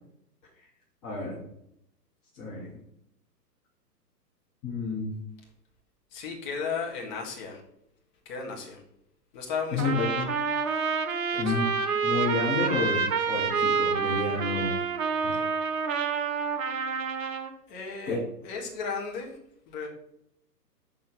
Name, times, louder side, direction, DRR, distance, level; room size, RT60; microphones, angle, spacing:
voice 1, 1.0-1.4 2.3-2.7 4.6-5.1 9.7-10.3 11.4-11.7 12.0-14.8 15.2-15.4 18.1-18.2, left 3 dB, 5° left, -9 dB, 0.5 m, -30 dB
voice 2, 6.1-7.6 8.3-8.8 9.3-10.1 11.3-11.6 15.3-15.4 17.7-19.4 19.7-19.9, left 5 dB, 30° left, 0 dB, 1.7 m, -35 dB
Trumpet, 9.8-17.5, right 5 dB, 55° right, 1.0 m, -28 dB
6.5 x 3.5 x 5.8 m, 0.76 s
figure-of-eight pair, 125°, 49 cm